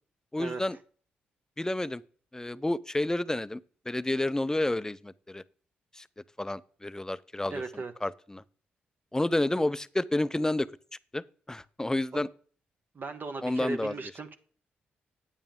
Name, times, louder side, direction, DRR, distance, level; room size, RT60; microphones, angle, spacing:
voice 1, 0.3-0.8 1.6-2.0 2.3-3.6 3.9-5.4 5.9-6.0 6.4-7.6 8.0-8.4 9.1-10.7 11.1-11.2 11.5-12.3 13.4-14.0, left 1 dB, 15° left, 0.5 m, -30 dB
voice 2, 7.5-7.9 12.1-12.2 12.9-14.3, right 3 dB, 45° right, 1.1 m, -37 dB
8.9 x 8.6 x 3.6 m
hypercardioid pair, 45°, 5 cm